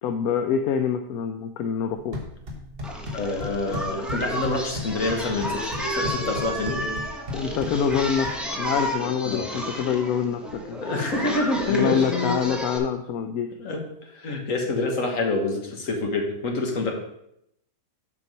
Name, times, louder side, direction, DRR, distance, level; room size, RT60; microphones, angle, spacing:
voice 1, 0.0-2.2 7.3-8.3 8.6-10.8 11.7-13.5, left 7 dB, 80° left, 6 dB, 1.1 m, -25 dB
sound 1, 1.9-8.9, left 2 dB, 40° right, 1.6 m, -37 dB
Singing, 2.8-12.8, equal, ahead, 0.9 m, -32 dB
voice 2, 3.1-6.8 9.3-9.5 10.8-12.4 13.6-16.9, left 2 dB, 60° left, 2 dB, 1.7 m, -27 dB
sound 2, 3.6-4.5 4.9-7.1 7.4-8.0, right 1 dB, 20° right, 2.0 m, -37 dB
7.4 x 5.7 x 5.4 m, 0.77 s
omnidirectional pair, 1.6 m